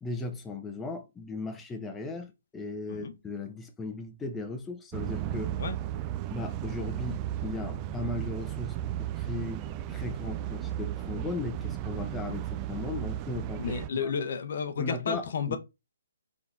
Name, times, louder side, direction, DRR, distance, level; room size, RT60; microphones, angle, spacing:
voice 1, 0.0-5.6 6.3-14.1 14.8-15.6, left 3 dB, 10° left, 0.6 m, -37 dB
sound 1, 4.9-13.9, right 12 dB, 25° right, 0.3 m, -35 dB
voice 2, 13.6-15.6, left 6 dB, 55° left, 0.7 m, -32 dB
4.5 x 3.9 x 2.6 m
figure-of-eight pair, 135°, 0 cm